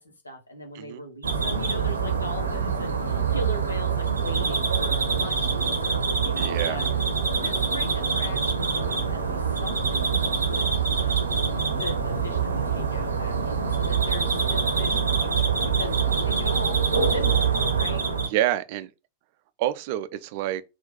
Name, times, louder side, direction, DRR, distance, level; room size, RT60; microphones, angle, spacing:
voice 1, 0.0-6.8 7.3-10.7 11.0-16.8 17.1-18.2, left 2 dB, 80° left, 1.0 m, -39 dB
sound 1, 1.2-18.3, right 5 dB, 75° right, 0.7 m, -25 dB
voice 2, 6.4-6.8 18.3-18.9 19.6-20.6, right 13 dB, 50° right, 0.4 m, -27 dB
3.8 x 2.4 x 4.1 m
figure-of-eight pair, 90°, 0 cm